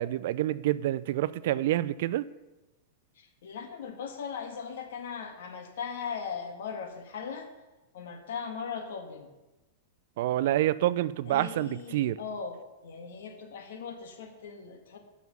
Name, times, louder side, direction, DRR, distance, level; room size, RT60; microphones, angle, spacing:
voice 1, 0.0-2.3 10.2-12.2, right 14 dB, 60° right, 0.4 m, -27 dB
voice 2, 3.2-7.5 7.9-9.3 11.3-12.6 12.8-15.0, left 6 dB, 75° left, 1.7 m, -39 dB
9.3 x 6.2 x 6.7 m
supercardioid pair, 145°, 0 cm